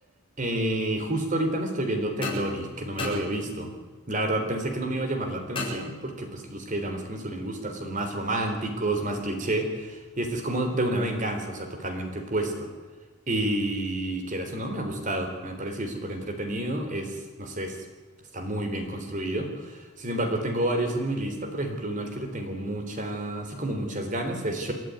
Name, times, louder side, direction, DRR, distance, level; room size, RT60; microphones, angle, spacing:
voice 1, 0.4-3.7 4.1-12.7 13.3-17.8 18.3-24.7, right 1 dB, 35° right, 5 dB, 3.8 m, -29 dB
sound 1, 2.2-3.9 5.5-6.5, left 2 dB, 25° left, 7.2 m, -35 dB
29.0 x 11.0 x 9.7 m, 1.3 s
head